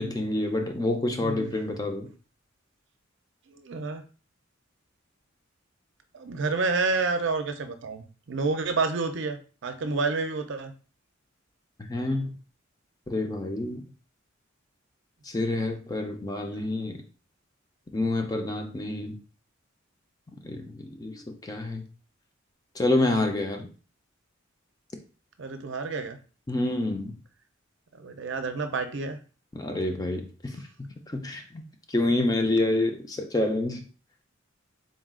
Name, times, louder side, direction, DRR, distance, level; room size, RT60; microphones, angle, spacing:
voice 1, 0.0-2.1 11.9-12.3 13.1-13.8 15.2-17.0 17.9-19.2 20.4-21.9 22.8-23.7 26.5-27.2 29.5-31.6 31.9-33.9, left 2 dB, 20° left, 0.4 m, -28 dB
voice 2, 1.2-1.6 3.5-4.0 6.1-10.7 25.4-26.2 27.9-29.2, right 4 dB, 65° right, 0.5 m, -29 dB
3.9 x 2.3 x 3.6 m
head